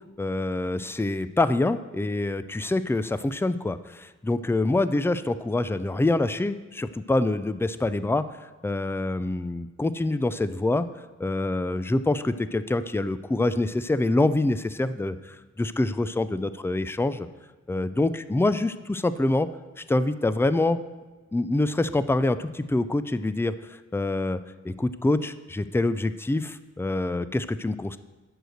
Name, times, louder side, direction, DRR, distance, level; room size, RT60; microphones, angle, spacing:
voice 1, 0.2-10.8 11.2-17.3 17.7-19.5 19.8-20.8 21.3-24.4 24.6-28.0, left 2 dB, 10° left, 13 dB, 0.3 m, -26 dB
7.9 x 6.5 x 7.7 m, 1.2 s
wide cardioid pair, 100°, 31 cm